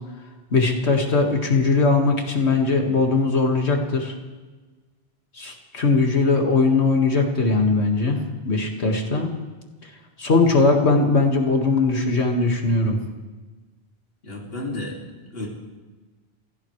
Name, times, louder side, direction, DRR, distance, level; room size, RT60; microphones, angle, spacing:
voice 1, 0.5-4.1 5.4-8.2 8.4-9.3 10.2-13.0, left 3 dB, 80° left, 2 dB, 2.2 m, -20 dB
voice 2, 14.2-15.5, left 2 dB, 65° left, -2 dB, 2.8 m, -32 dB
24.5 x 16.5 x 3.3 m, 1.3 s
omnidirectional pair, 1.1 m